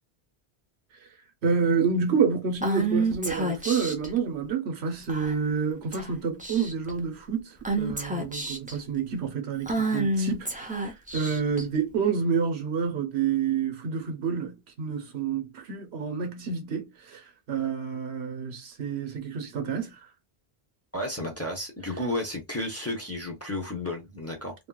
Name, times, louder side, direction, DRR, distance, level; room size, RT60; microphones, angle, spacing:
voice 1, 1.4-10.9 11.1-17.2 17.5-19.9, right 6 dB, 80° right, 1.0 m, -28 dB
Female speech woman speaking / Whispering, 2.6-4.1 5.1-5.5 5.9-6.1 6.4-6.9 7.7-8.7 9.7-11.6, right 2 dB, 10° right, 0.5 m, -29 dB
voice 2, 20.9-24.5, left 1 dB, 15° left, 0.7 m, -32 dB
3.1 x 2.7 x 2.3 m
omnidirectional pair, 1.1 m